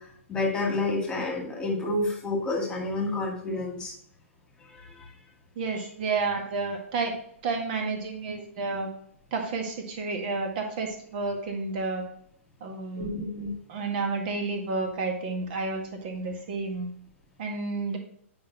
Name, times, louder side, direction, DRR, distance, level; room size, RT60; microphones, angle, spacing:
voice 1, 0.0-3.9 4.6-5.1 5.7-5.8 12.9-13.5, left 2 dB, 10° left, -1 dB, 2.0 m, -30 dB
voice 2, 5.6-7.2 7.4-8.9 9.3-12.0 12.6-13.2 13.7-16.9 17.4-18.0, right 3 dB, 40° right, 3 dB, 1.7 m, -30 dB
8.7 x 5.5 x 2.9 m, 0.64 s
figure-of-eight pair, 115°, 7 cm